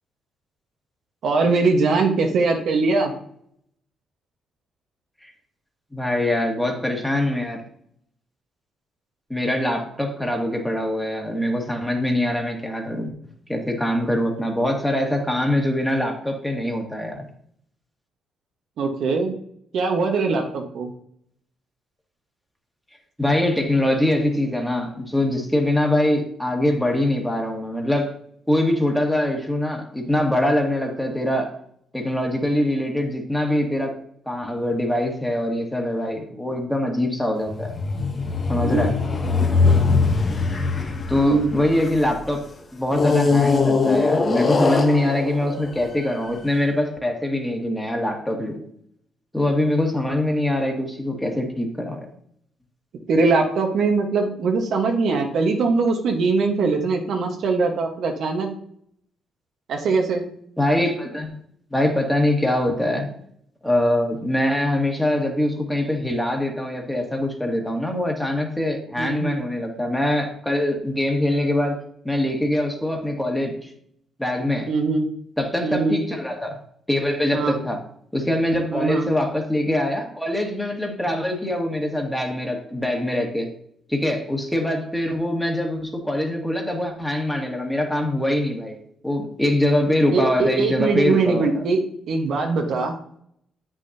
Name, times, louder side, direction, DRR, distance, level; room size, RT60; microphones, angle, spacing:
voice 1, 1.2-3.1 18.8-19.3 19.7-20.9 38.6-38.9 41.2-41.5 53.1-58.5 59.7-60.2 69.0-69.4 74.7-75.1 75.6-76.0 77.3-77.5 78.7-79.1 90.1-91.8 92.1-92.9, right 4 dB, 70° right, 2 dB, 1.3 m, -21 dB
voice 2, 5.9-7.6 9.3-13.1 13.5-17.2 23.2-28.1 28.5-31.5 31.9-33.9 34.3-37.7 38.5-38.9 41.1-48.6 49.3-52.1 60.6-61.3 61.7-63.1 63.6-73.7 74.2-74.7 75.4-76.6 76.9-77.8 78.1-83.5 83.9-91.6, left 1 dB, 5° left, 1 dB, 1.7 m, -23 dB
sound 1, 37.5-42.1 42.9-46.3, left 4 dB, 40° left, 1.0 m, -21 dB
8.4 x 6.1 x 2.8 m, 0.67 s
cardioid pair, 90°, 0 cm